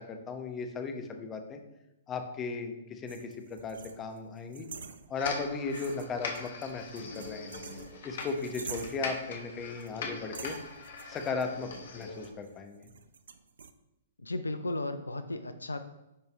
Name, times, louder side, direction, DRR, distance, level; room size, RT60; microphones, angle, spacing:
voice 1, 0.0-1.6 2.1-4.7 5.1-7.6 8.0-10.6 11.1-12.9, left 4 dB, 20° left, 5 dB, 0.9 m, -36 dB
sound 1, 3.1-5.4 5.7-9.2 9.8-10.0 10.3-13.7, right 6 dB, 65° right, 0.5 m, -48 dB
sound 2, 5.1-12.3, left 4 dB, 55° left, 1.3 m, -41 dB
voice 2, 14.2-15.8, left 2 dB, 80° left, 10 dB, 0.4 m, -35 dB
10.0 x 4.6 x 3.3 m, 0.92 s
figure-of-eight pair, 115°, 0 cm